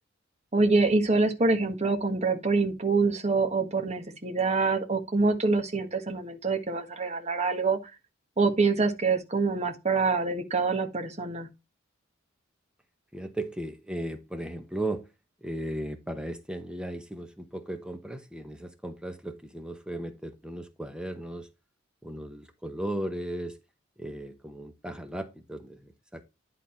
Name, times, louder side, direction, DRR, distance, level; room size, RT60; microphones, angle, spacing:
voice 1, 0.5-7.8 8.4-11.5, right 3 dB, 35° right, 1.6 m, -25 dB
voice 2, 13.1-15.1 15.4-21.5 22.0-23.6 24.0-26.2, right 1 dB, 5° right, 0.9 m, -36 dB
11.0 x 3.9 x 4.4 m
head